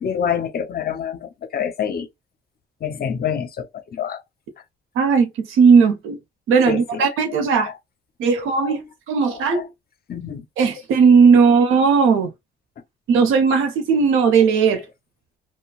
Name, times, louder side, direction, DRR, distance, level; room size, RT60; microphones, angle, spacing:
voice 1, 0.0-2.1 2.8-4.2 6.6-7.0 7.6-7.7 8.3-8.8 9.3-9.7 10.1-10.4, left 8 dB, 50° left, 0.7 m, -27 dB
voice 2, 4.9-6.2 6.5-7.7 8.2-9.6 10.6-12.3 13.1-14.8, right 5 dB, 90° right, 0.8 m, -16 dB
2.9 x 2.2 x 2.3 m
cardioid pair, 90°, 20 cm